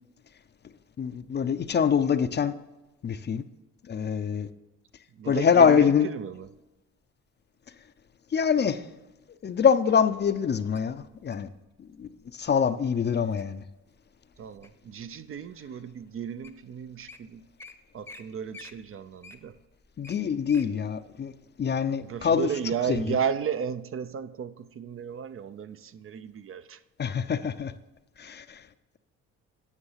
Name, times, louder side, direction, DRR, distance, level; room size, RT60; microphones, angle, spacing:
voice 1, 1.0-2.5 3.0-3.4 3.9-4.5 5.3-6.1 8.3-8.9 9.4-11.5 11.8-13.6 20.0-21.3 21.6-22.5 22.9-23.0 27.0-27.7 28.2-28.6, left 7 dB, 35° left, 0.5 m, -24 dB
voice 2, 5.1-6.5 14.4-17.4 17.9-19.6 22.0-26.8, right 7 dB, 45° right, 0.5 m, -34 dB
Wild animals, 10.8-11.5 12.2-12.5 13.0-13.4 14.0-14.9 15.5-15.6 16.2-16.3 16.4-16.6 16.9-17.2 17.6-17.7 18.0-18.2 18.5-20.7 21.1-21.2, left 3 dB, 10° left, 0.8 m, -47 dB
9.7 x 6.4 x 5.6 m
cardioid pair, 90°, 30 cm